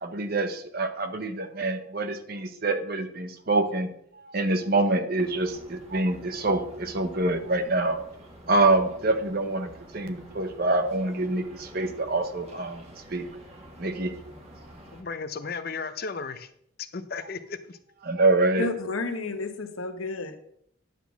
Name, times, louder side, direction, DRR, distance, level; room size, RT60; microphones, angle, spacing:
voice 1, 0.0-3.9 4.1-8.0 8.5-13.3 13.8-14.1 18.1-18.7, right 2 dB, 45° right, 8 dB, 0.9 m, -26 dB
sound 1, 5.2-15.0, right 1 dB, 30° right, 1.6 m, -48 dB
voice 2, 14.9-16.5 16.8-17.8, left 5 dB, 45° left, 11 dB, 0.6 m, -35 dB
voice 3, 18.6-20.4, left 3 dB, 85° left, 7 dB, 1.1 m, -31 dB
10.0 x 4.1 x 7.0 m, 0.71 s
head